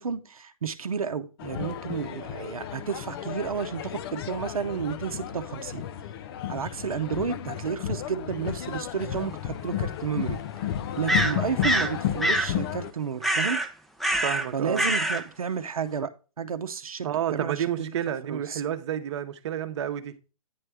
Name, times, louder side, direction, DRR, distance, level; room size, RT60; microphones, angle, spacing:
voice 1, 0.0-5.8 6.5-10.4 11.0-13.6 14.5-16.1 16.4-17.1 17.3-17.9 18.3-18.6, right 6 dB, 80° right, 0.8 m, -31 dB
sound 1, 1.4-12.9, left 10 dB, 45° left, 0.5 m, -33 dB
sound 2, 9.0-9.1 11.1-11.9 12.2-12.5 13.2-13.7 14.0-14.5 14.7-15.2, right 1 dB, ahead, 0.6 m, -25 dB
voice 2, 14.2-14.8 17.0-20.1, right 10 dB, 50° right, 0.9 m, -30 dB
9.5 x 3.3 x 6.2 m
figure-of-eight pair, 120°, 18 cm